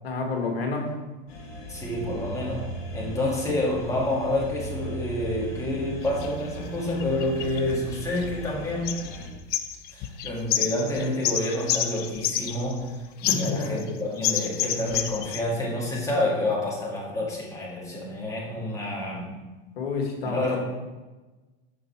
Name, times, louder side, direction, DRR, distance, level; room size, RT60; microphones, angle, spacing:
voice 1, 0.0-0.9 13.3-13.7 19.8-20.6, left 3 dB, 85° left, 2 dB, 1.7 m, -29 dB
sound 1, 1.3-9.3, right 1 dB, 55° left, 1.9 m, -37 dB
voice 2, 1.7-2.7 2.9-9.0 9.9-12.9 13.2-19.3 20.2-20.6, left 1 dB, 10° left, -4 dB, 2.0 m, -28 dB
sound 2, 6.1-6.3 7.0-8.5 8.9-9.2 9.5-12.9 13.2-13.9 14.2-15.4, left 11 dB, 35° left, 0.5 m, -28 dB
7.6 x 5.3 x 4.4 m, 1.2 s
supercardioid pair, 130°, 30 cm